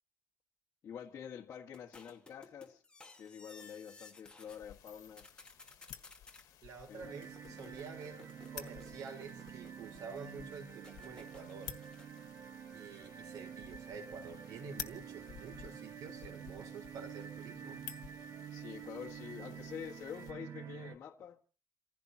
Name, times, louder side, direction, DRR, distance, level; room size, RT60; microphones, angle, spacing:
voice 1, 0.8-2.8 3.2-5.3 6.9-7.1 7.4-7.7 18.5-21.4, left 8 dB, 50° left, 1.7 m, -47 dB
sound 1, 1.7-4.6 4.9-6.4 7.1-10.1 10.8-12.3, left 3 dB, 15° left, 1.9 m, -58 dB
sound 2, 4.4-20.3, left 10 dB, 80° left, 1.5 m, -53 dB
voice 2, 6.6-11.7 12.7-17.8, right 5 dB, 85° right, 4.3 m, -49 dB
sound 3, 7.0-21.0, right 8 dB, 65° right, 1.6 m, -49 dB
29.0 x 15.5 x 2.9 m
cardioid pair, 145°, 6 cm